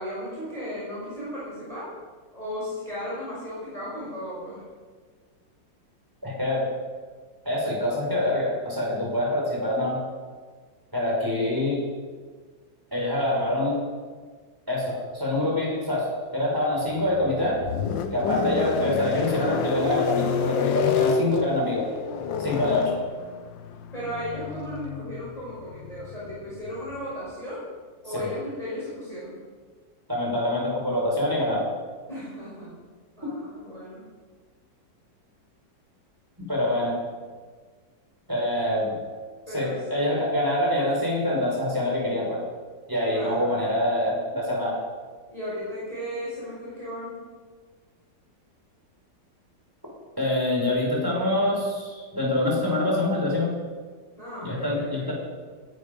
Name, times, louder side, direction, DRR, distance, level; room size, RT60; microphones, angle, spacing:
voice 1, 0.0-1.9 2.3-4.6 22.6-23.0 23.9-27.7 28.0-29.4 32.1-32.7 33.2-34.0 39.5-40.1 43.1-43.5 45.3-47.2 54.1-55.1, equal, 20° left, -8 dB, 6.0 m, -35 dB
voice 2, 6.2-6.7 7.5-10.0 10.9-11.8 12.9-13.8 14.7-17.6 18.1-21.9 22.4-22.9 28.1-28.3 30.1-31.6 33.2-33.3 36.5-37.0 38.3-39.0 39.5-42.4 42.9-44.8 50.2-53.5 54.4-55.1, left 1 dB, 10° right, -3 dB, 5.4 m, -25 dB
sound 1, 16.9-27.1, left 7 dB, 80° left, 1.6 m, -29 dB
20.5 x 11.5 x 5.4 m, 1.5 s
omnidirectional pair, 2.0 m